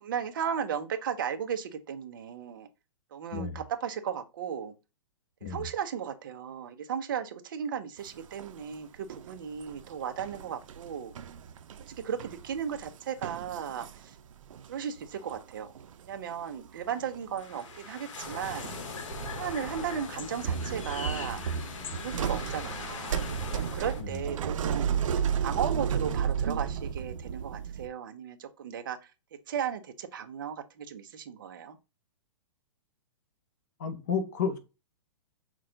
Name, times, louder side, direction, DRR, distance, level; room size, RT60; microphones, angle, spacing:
voice 1, 0.0-2.7 3.1-4.7 5.4-11.1 11.8-14.2 14.7-15.7 16.0-18.7 19.4-21.4 21.9-23.1 23.6-24.9 25.4-29.1 29.5-31.8, right 8 dB, 40° right, 0.6 m, -35 dB
sound 1, 8.1-8.8 9.1-14.7 15.0-16.1 16.3-16.6 16.9-17.6 18.1-19.9 20.3-27.9, right 7 dB, 85° right, 0.5 m, -33 dB
sound 2, 17.4-24.0, left 4 dB, 70° left, 1.2 m, -44 dB
sound 3, 18.4-23.6, left 5 dB, 90° left, 0.8 m, -42 dB
voice 2, 33.8-34.6, left 6 dB, 35° left, 0.6 m, -31 dB
5.9 x 2.2 x 3.7 m
hypercardioid pair, 180°, 16 cm